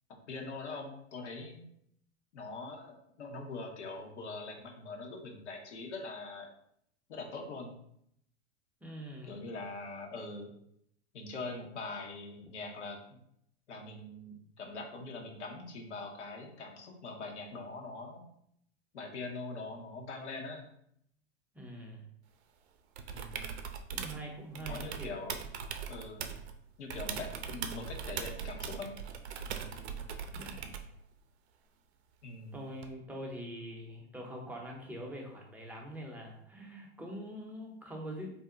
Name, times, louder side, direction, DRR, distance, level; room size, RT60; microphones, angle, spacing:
voice 1, 0.3-1.6 2.3-6.5 7.1-7.7 9.3-10.5 11.1-13.2 13.7-18.2 18.9-20.6 23.1-23.5 24.7-25.4 25.9-26.3 26.8-28.9 32.2-32.6, left 3 dB, 85° left, 1 dB, 0.9 m, -43 dB
voice 2, 8.8-9.5 21.5-22.1 23.9-25.1 30.3-30.7 32.5-38.3, equal, 5° right, -1 dB, 0.6 m, -44 dB
sound 1, 23.0-24.2 24.6-26.5 26.9-30.9 32.8-32.9, right 7 dB, 70° right, 0.5 m, -40 dB
2.6 x 2.1 x 3.6 m, 0.71 s
hypercardioid pair, 105°, 34 cm